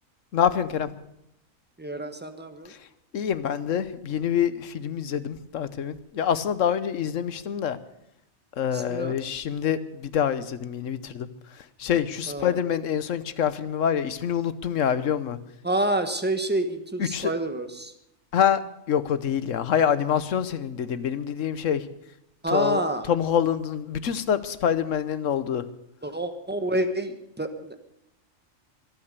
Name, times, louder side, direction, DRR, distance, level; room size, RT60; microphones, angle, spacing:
voice 1, 0.3-0.9 2.7-2.9 3.1-7.8 8.6-15.4 17.0-17.3 18.3-18.6 18.9-21.9 22.5-22.8 23.1-25.6, left 8 dB, 70° left, 14 dB, 1.2 m, -26 dB
voice 2, 1.8-2.7 8.7-9.2 12.3-12.6 15.6-17.9 22.4-23.1 26.0-27.9, right 1 dB, 10° right, 8 dB, 1.2 m, -28 dB
24.0 x 8.8 x 6.8 m, 0.80 s
omnidirectional pair, 1.4 m